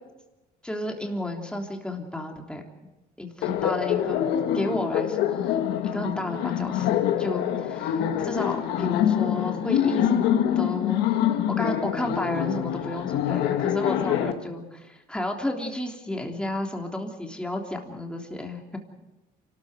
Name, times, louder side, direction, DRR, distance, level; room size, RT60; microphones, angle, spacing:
voice 1, 0.6-2.6 3.2-4.3 4.5-5.6 5.8-11.1 11.5-18.8, left 1 dB, 5° left, 1 dB, 3.4 m, -32 dB
Laughter, 3.4-14.3, left 10 dB, 90° left, 1.6 m, -25 dB
28.0 x 13.5 x 8.1 m, 1.1 s
cardioid pair, 110°, 17 cm